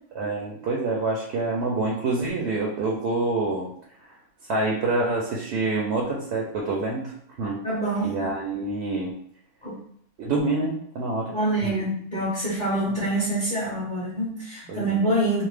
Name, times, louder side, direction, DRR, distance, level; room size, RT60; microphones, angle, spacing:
voice 1, 0.1-3.7 4.5-7.1 7.4-7.6 8.0-9.1 10.2-11.3 11.6-11.7 12.8-12.9 14.7-15.0, right 3 dB, 65° right, -2 dB, 0.7 m, -26 dB
voice 2, 7.6-8.2 9.6-9.8 11.3-15.4, right 1 dB, 40° left, -8 dB, 0.8 m, -26 dB
2.7 x 2.1 x 3.3 m, 0.65 s
omnidirectional pair, 1.5 m